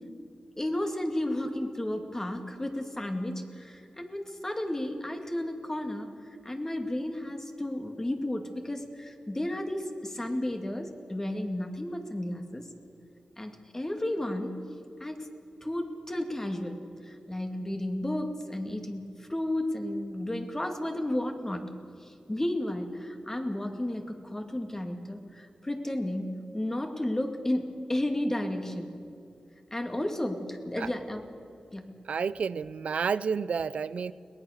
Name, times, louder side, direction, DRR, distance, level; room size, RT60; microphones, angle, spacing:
voice 1, 0.6-6.1 6.4-12.7 13.4-14.6 15.0-15.3 15.6-16.8 17.0-21.7 22.0-28.9 29.7-31.2 31.7-31.9, left 1 dB, 20° left, 5 dB, 2.3 m, -33 dB
voice 2, 32.0-34.1, right 6 dB, 80° right, 17 dB, 0.5 m, -30 dB
22.5 x 19.0 x 6.6 m, 2.6 s
cardioid pair, 65°, 2 cm